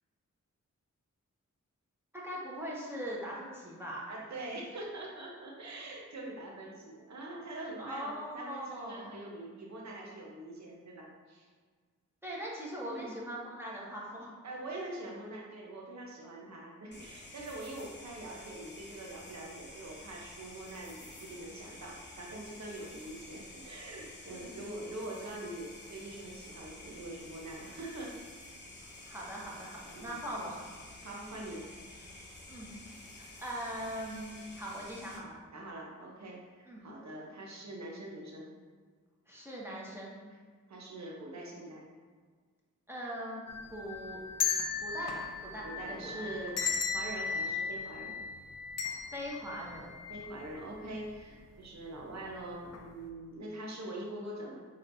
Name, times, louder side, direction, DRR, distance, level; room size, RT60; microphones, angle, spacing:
voice 1, 2.1-4.0 7.8-9.1 12.2-14.3 24.3-24.8 29.0-30.6 32.5-32.7 33.2-35.4 36.7-36.8 39.3-40.2 42.9-43.4 43.7-44.2 44.8-46.3 49.1-49.9, equal, 5° right, -5 dB, 1.2 m, -41 dB
voice 2, 4.1-11.5 12.9-13.1 14.4-28.2 29.9-30.2 31.0-31.7 35.5-38.5 40.7-41.9 45.6-48.2 50.1-54.6, right 1 dB, 60° right, -2 dB, 0.9 m, -44 dB
sound 1, 16.9-35.2, left 2 dB, 35° left, 0.9 m, -50 dB
sound 2, 43.5-50.6 51.0-51.1 52.0-52.3 52.7-52.9, left 5 dB, 55° left, 0.5 m, -36 dB
4.1 x 3.2 x 2.6 m, 1.5 s
cardioid pair, 45°, 31 cm